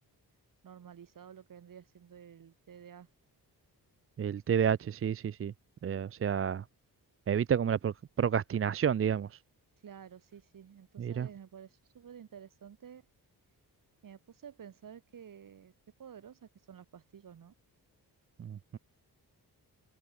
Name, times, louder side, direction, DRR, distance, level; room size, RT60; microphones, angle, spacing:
voice 1, 0.6-3.1 9.8-13.0 14.0-15.7 16.0-17.5, right 8 dB, 55° right, 1.8 m, -51 dB
voice 2, 4.2-5.5 5.8-6.7 7.3-9.4 11.0-11.3 18.4-18.8, right 8 dB, 35° right, 0.4 m, -30 dB
wide cardioid pair, 150°, 39 cm